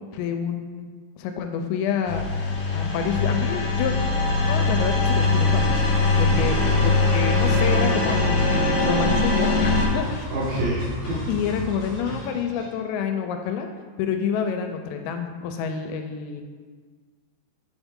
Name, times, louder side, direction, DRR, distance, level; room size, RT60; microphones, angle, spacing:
voice 1, 0.1-0.9 1.2-2.3 2.7-3.9 4.5-5.8 6.2-10.3 11.3-13.7 14.0-16.4, left 7 dB, 85° left, 5 dB, 2.7 m, -28 dB
sound 1, 2.1-9.9, left 3 dB, 65° left, 2.3 m, -21 dB
sound 2, 4.0-12.0, right 1 dB, 60° right, 2.2 m, -39 dB
voice 2, 6.2-6.6 10.3-11.2, right 1 dB, 75° right, -7 dB, 3.4 m, -27 dB
sound 3, 7.4-12.7, left 2 dB, 45° left, 2.3 m, -37 dB
8.0 x 5.5 x 3.6 m, 1.5 s
omnidirectional pair, 5.2 m